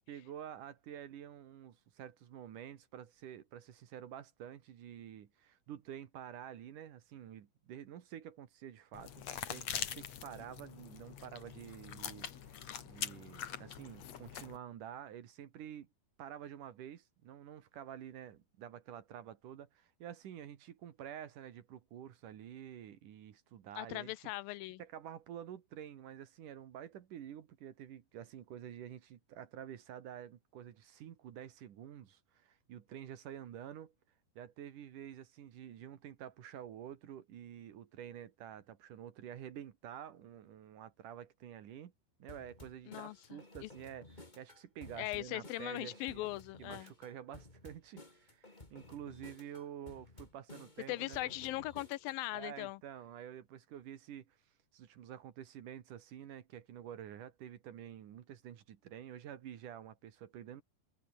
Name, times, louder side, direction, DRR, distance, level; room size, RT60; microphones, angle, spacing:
voice 1, 0.1-9.2 9.5-15.9 16.2-24.1 24.8-33.9 34.4-41.9 42.2-46.3 46.6-51.6 52.3-54.4 54.7-60.6, right 10 dB, 65° right, 3.0 m, -49 dB
sound 1, 8.9-14.6, left 9 dB, 50° left, 2.7 m, -43 dB
voice 2, 23.8-24.8 42.9-43.7 45.0-46.9 50.9-52.8, left 18 dB, 80° left, 2.3 m, -40 dB
sound 2, 42.3-52.2, left 2 dB, 15° left, 2.7 m, -55 dB
omnidirectional pair, 4.2 m